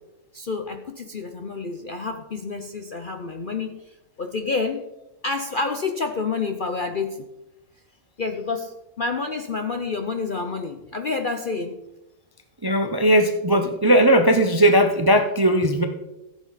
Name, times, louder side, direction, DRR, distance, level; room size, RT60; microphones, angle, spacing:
voice 1, 0.3-4.9 5.2-7.2 8.2-11.8, left 4 dB, 50° left, 6 dB, 0.6 m, -29 dB
voice 2, 12.6-15.9, right 1 dB, 25° right, 6 dB, 0.5 m, -18 dB
14.5 x 8.1 x 4.1 m, 0.97 s
omnidirectional pair, 1.7 m